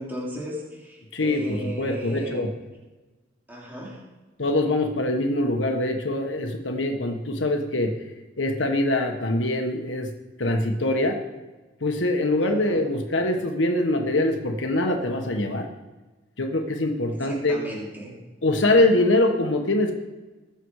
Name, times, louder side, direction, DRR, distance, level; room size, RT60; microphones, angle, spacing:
voice 1, 0.0-2.5 3.5-4.0 12.4-12.8 17.1-18.2, equal, 10° right, -5 dB, 3.2 m, -36 dB
voice 2, 1.1-2.5 4.4-7.9 8.4-10.1 10.4-11.2 11.8-15.7 16.4-17.6 18.4-19.9, left 1 dB, 90° left, 4 dB, 1.4 m, -23 dB
21.0 x 7.0 x 4.9 m, 1.2 s
head